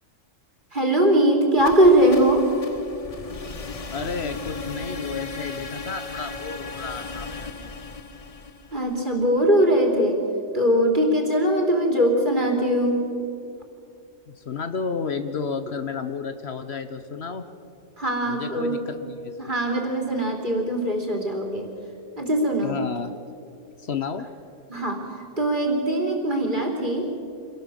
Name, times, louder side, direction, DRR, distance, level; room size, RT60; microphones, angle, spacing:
voice 1, 0.7-2.5 8.7-10.2 10.5-13.1 18.0-18.8 19.4-21.7 22.2-22.8 24.7-25.0 25.4-27.1, right 1 dB, 40° right, 2 dB, 3.4 m, -21 dB
sound 1, 1.5-9.5, left 4 dB, 30° left, 0.9 m, -36 dB
voice 2, 3.9-7.7 14.3-17.5 18.2-19.6 22.6-23.1 23.8-24.3, left 5 dB, 60° left, 9 dB, 1.2 m, -32 dB
26.5 x 17.5 x 7.8 m, 2.6 s
omnidirectional pair, 1.3 m